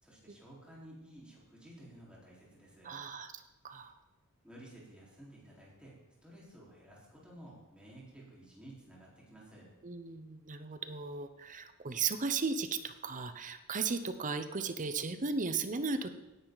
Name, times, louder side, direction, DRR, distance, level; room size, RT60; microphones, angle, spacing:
voice 1, 0.0-2.9 4.4-9.7, right 1 dB, 5° right, -5 dB, 4.3 m, -54 dB
voice 2, 2.8-3.9 9.8-16.1, right 4 dB, 35° right, 10 dB, 0.7 m, -36 dB
17.5 x 10.5 x 4.0 m, 1.1 s
head